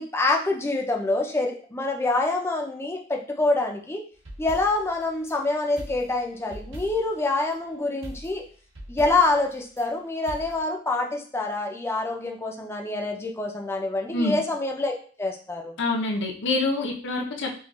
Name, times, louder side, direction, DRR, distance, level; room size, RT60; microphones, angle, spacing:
voice 1, 0.0-4.0 4.4-8.4 8.9-14.9 15.2-15.7, left 2 dB, 15° left, 2 dB, 0.5 m, -26 dB
sound 1, 4.1-5.4 5.8-7.2 8.0-9.9 10.3-10.6, right 1 dB, 80° right, 1.2 m, -42 dB
voice 2, 15.8-17.6, left 2 dB, 65° left, 1 dB, 0.7 m, -26 dB
5.3 x 2.4 x 2.3 m, 0.42 s
head